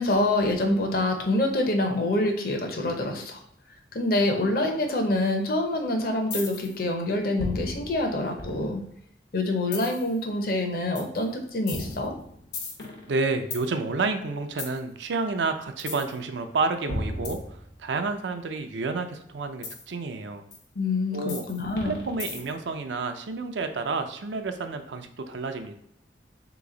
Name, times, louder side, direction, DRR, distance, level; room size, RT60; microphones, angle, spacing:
voice 1, 0.0-3.4 3.9-8.8 9.3-12.1 20.8-21.9, left 2 dB, 55° left, 4 dB, 0.7 m, -26 dB
sound 1, 6.3-6.8 7.4-9.0 9.7-10.1 11.0-11.2 11.7-13.7 14.6-14.8 15.8-16.2 16.9-18.1 19.6-19.8 20.5-20.6 21.3-22.7, left 2 dB, 80° left, 0.9 m, -35 dB
voice 2, 13.1-20.4 21.1-21.4 21.8-25.7, right 3 dB, 90° right, 7 dB, 0.5 m, -30 dB
3.4 x 3.0 x 3.7 m, 0.74 s
head